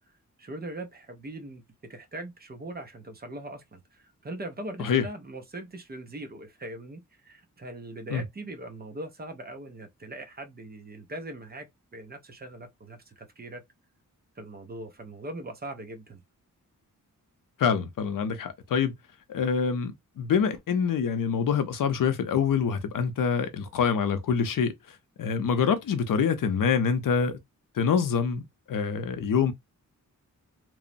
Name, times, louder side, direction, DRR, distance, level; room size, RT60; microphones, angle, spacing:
voice 1, 0.4-1.6 1.9-13.6 14.4-16.2, right 1 dB, 30° right, 0.4 m, -41 dB
voice 2, 17.6-18.9 19.3-27.4 27.7-28.4 28.7-29.5, left 6 dB, 75° left, 0.6 m, -26 dB
2.9 x 2.0 x 2.5 m
wide cardioid pair, 180°, 32 cm